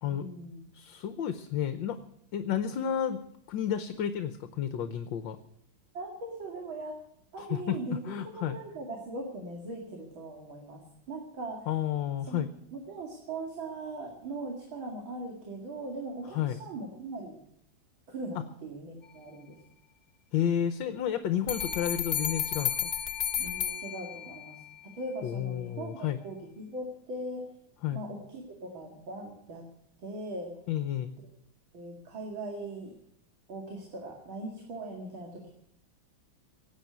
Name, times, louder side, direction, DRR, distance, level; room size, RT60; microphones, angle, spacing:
voice 1, 0.0-0.7 5.9-7.0 7.3-10.8 11.1-11.7 12.2-12.4 12.7-17.4 18.1-19.6 23.4-24.6 24.9-25.9 26.2-27.5 27.9-29.7 30.0-30.5 31.7-32.9 33.5-35.5, right 2 dB, 85° right, 1 dB, 3.1 m, -40 dB
voice 2, 0.7-2.0 2.3-3.2 3.5-5.4 7.4-7.8 8.0-8.6 11.7-12.5 16.3-16.6 20.3-22.9 25.2-26.2 27.8-28.0 30.7-31.1, left 9 dB, 70° left, 10 dB, 1.6 m, -31 dB
sound 1, 21.5-24.6, left 8 dB, 35° left, 1.0 m, -32 dB
17.5 x 9.0 x 9.3 m, 0.72 s
omnidirectional pair, 2.1 m